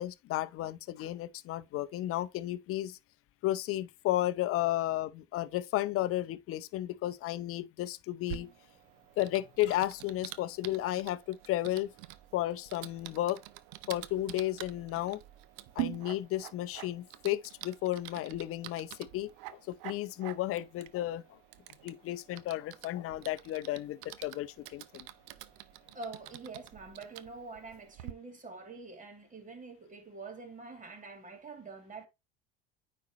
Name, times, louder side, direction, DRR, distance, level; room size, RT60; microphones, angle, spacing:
voice 1, 0.0-3.0 3.4-8.5 9.2-11.9 12.3-13.4 13.9-15.2 15.8-21.4 21.8-25.1, left 14 dB, 45° left, 0.7 m, -33 dB
Typing, 8.3-28.1, right 16 dB, 65° right, 0.7 m, -46 dB
voice 2, 25.9-32.1, right 3 dB, 25° right, 2.6 m, -46 dB
9.4 x 4.3 x 2.9 m
hypercardioid pair, 75°, 30 cm